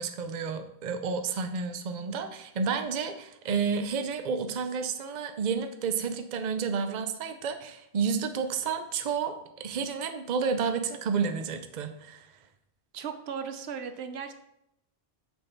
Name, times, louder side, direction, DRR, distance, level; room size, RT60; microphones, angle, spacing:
voice 1, 0.0-12.3, right 5 dB, 50° right, 7 dB, 0.7 m, -31 dB
voice 2, 12.9-14.3, right 7 dB, 75° right, 9 dB, 0.9 m, -36 dB
6.5 x 6.3 x 4.5 m, 0.80 s
omnidirectional pair, 1.1 m